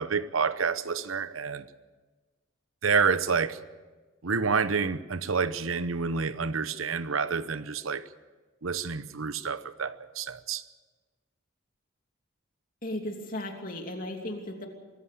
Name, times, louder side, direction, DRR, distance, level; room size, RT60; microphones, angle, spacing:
voice 1, 0.0-1.6 2.8-3.6 4.2-8.1 8.6-10.6, right 5 dB, 85° right, 0.9 m, -28 dB
voice 2, 12.8-14.7, left 1 dB, 40° left, 2.9 m, -35 dB
24.0 x 14.5 x 8.4 m
head